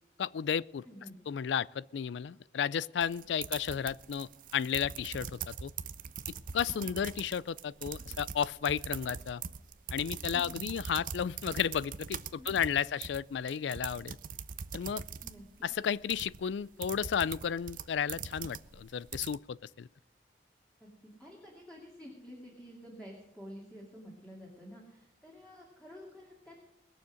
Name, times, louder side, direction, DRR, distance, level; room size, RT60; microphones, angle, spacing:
voice 1, 0.2-0.8 1.3-5.7 6.5-9.4 9.9-14.2 14.7-15.0 15.6-19.9, left 8 dB, 85° left, 0.4 m, -33 dB
voice 2, 0.8-1.2 6.6-7.1 8.0-8.3 10.3-10.7 12.4-12.6 15.2-15.7 20.8-20.9 21.2-26.7, equal, 5° left, 2.4 m, -50 dB
sound 1, 3.0-19.4, right 7 dB, 50° right, 0.6 m, -42 dB
20.5 x 7.1 x 6.3 m
head